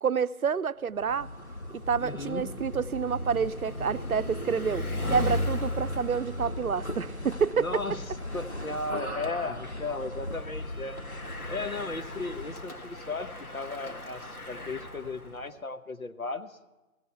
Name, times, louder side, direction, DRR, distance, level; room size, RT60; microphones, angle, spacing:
voice 1, 0.0-1.3 1.7-4.8 5.1-7.6, right 6 dB, 80° right, 0.6 m, -28 dB
Bicycle, 0.9-15.5, left 1 dB, 90° left, 1.7 m, -37 dB
sound 1, 1.0-12.7, left 1 dB, 50° left, 1.2 m, -40 dB
voice 2, 2.0-2.5 7.6-8.1 8.3-11.0 11.5-16.6, left 3 dB, 70° left, 1.0 m, -35 dB
15.5 x 14.5 x 4.6 m
figure-of-eight pair, 175°, 43 cm